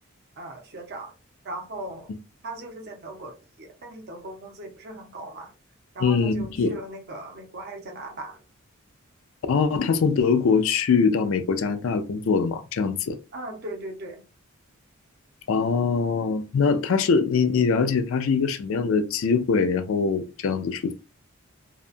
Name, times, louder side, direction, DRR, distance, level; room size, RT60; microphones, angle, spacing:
voice 1, 0.4-1.2 1.4-2.1 2.4-5.5 5.9-8.4 13.3-14.2, right 2 dB, 50° right, 0.7 m, -38 dB
voice 2, 6.0-6.8 9.5-13.2 15.5-20.9, left 5 dB, 65° left, 0.4 m, -23 dB
2.7 x 2.2 x 2.4 m
head